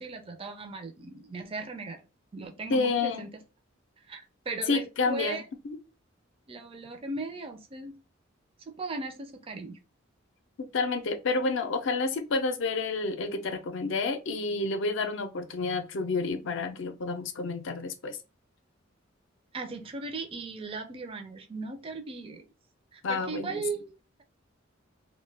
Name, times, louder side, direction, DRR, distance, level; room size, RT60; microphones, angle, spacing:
voice 1, 0.0-2.0 2.3-3.3 4.1-5.4 6.5-8.0 8.7-9.8 19.5-22.4 22.9-24.2, right 3 dB, 30° right, 0.4 m, -37 dB
voice 2, 2.7-3.3 4.7-5.4 10.6-18.2 23.0-23.6, left 3 dB, 70° left, 0.5 m, -29 dB
2.2 x 2.2 x 3.2 m
head